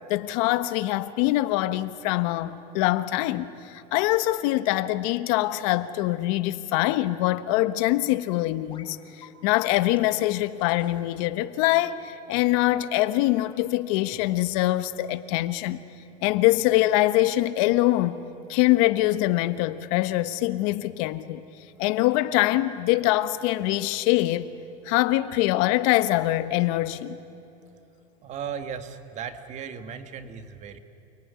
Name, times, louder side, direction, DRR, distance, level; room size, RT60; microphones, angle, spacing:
voice 1, 0.1-15.8 16.2-18.2 18.5-21.4 21.8-24.5 24.8-27.2, left 16 dB, 70° left, 1.2 m, -24 dB
sound 1, 8.7-8.9 9.2-9.3 10.0-10.1 10.6-11.1 12.3-12.8 13.9-14.6, left 6 dB, 30° left, 3.6 m, -51 dB
voice 2, 28.2-30.8, right 7 dB, 40° right, 1.9 m, -36 dB
29.0 x 19.5 x 9.7 m
supercardioid pair, 130°, 18 cm